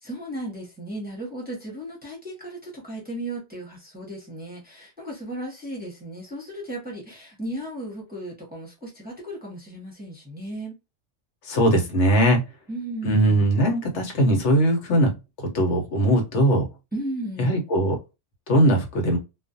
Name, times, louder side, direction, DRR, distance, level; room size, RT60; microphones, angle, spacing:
voice 1, 0.0-10.8 12.7-13.4 16.9-17.6, right 1 dB, 10° right, 0.8 m, -35 dB
voice 2, 11.4-12.4 13.0-16.7 17.4-18.0 18.5-19.2, right 1 dB, 75° left, 1.1 m, -20 dB
2.4 x 2.3 x 2.4 m
omnidirectional pair, 1.2 m